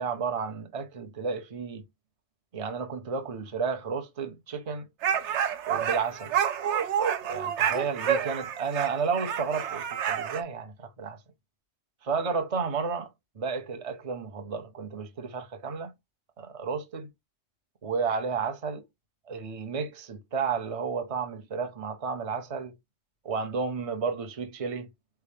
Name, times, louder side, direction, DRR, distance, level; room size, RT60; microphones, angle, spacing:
voice 1, 0.0-1.8 2.5-4.9 5.7-6.3 7.2-11.2 12.0-13.1 13.3-15.9 16.4-17.1 17.8-18.8 19.3-22.8 23.2-24.9, right 5 dB, 35° right, 0.7 m, -32 dB
sound 1, 5.0-10.4, right 8 dB, 75° right, 1.0 m, -28 dB
4.4 x 3.4 x 3.4 m
omnidirectional pair, 1.2 m